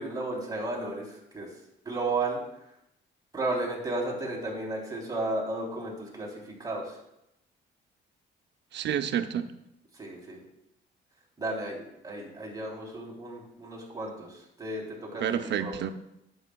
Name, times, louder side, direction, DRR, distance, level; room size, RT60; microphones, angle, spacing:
voice 1, 0.0-1.5 1.8-2.4 3.3-6.3 6.6-7.0 10.0-10.4 11.4-15.7, right 2 dB, 20° right, -3 dB, 3.3 m, -33 dB
voice 2, 8.7-9.5 15.1-15.9, right 9 dB, 65° right, 9 dB, 0.6 m, -29 dB
11.0 x 8.0 x 2.3 m, 0.83 s
cardioid pair, 90°, 20 cm